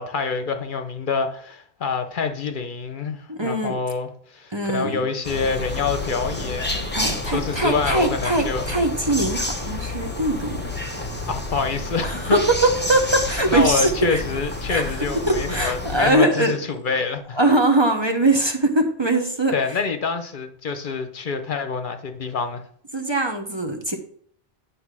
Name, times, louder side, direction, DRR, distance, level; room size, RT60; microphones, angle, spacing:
voice 1, 0.0-8.6 11.3-12.4 13.5-17.4 19.5-22.6, left 5 dB, 55° left, 0.8 m, -26 dB
voice 2, 3.3-3.8 4.5-5.0 6.9-10.7 12.0-14.2 14.7-14.8 15.1-16.9 17.3-19.5 22.9-24.0, right 2 dB, 30° right, 0.8 m, -21 dB
sound 1, 5.2-16.1, left 2 dB, 10° left, 0.9 m, -29 dB
9.4 x 3.2 x 6.0 m
omnidirectional pair, 1.0 m